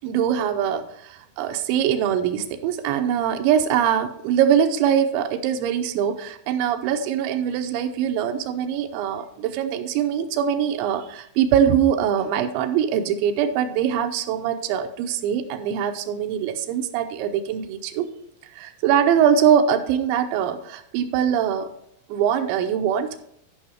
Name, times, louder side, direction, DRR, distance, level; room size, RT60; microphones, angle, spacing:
voice 1, 0.0-18.1 18.5-21.7 22.1-23.2, right 9 dB, 85° right, 6 dB, 2.9 m, -22 dB
11.0 x 5.5 x 4.8 m, 0.71 s
omnidirectional pair, 5.3 m